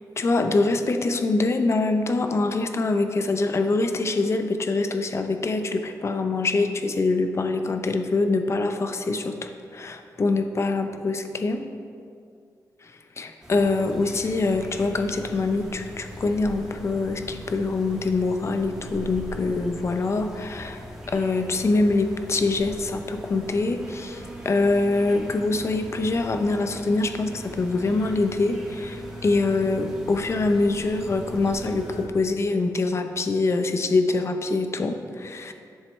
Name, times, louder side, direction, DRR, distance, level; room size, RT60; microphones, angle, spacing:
voice 1, 0.2-11.7 12.8-35.5, left 3 dB, 40° left, 7 dB, 0.6 m, -24 dB
sound 1, 13.4-32.1, right 1 dB, 10° right, 1.7 m, -40 dB
11.0 x 7.3 x 3.2 m, 2.3 s
wide cardioid pair, 105°, 7 cm